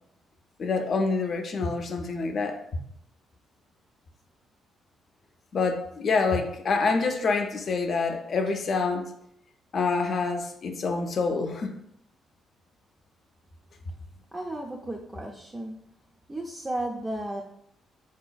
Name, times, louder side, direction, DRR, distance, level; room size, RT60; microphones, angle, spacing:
voice 1, 0.6-2.8 5.5-9.1 9.7-11.8, left 4 dB, 50° left, 6 dB, 0.4 m, -27 dB
voice 2, 14.3-15.8 16.3-17.4, right 1 dB, 15° right, 0 dB, 0.3 m, -34 dB
3.7 x 2.4 x 2.2 m, 0.73 s
cardioid pair, 90°, 0 cm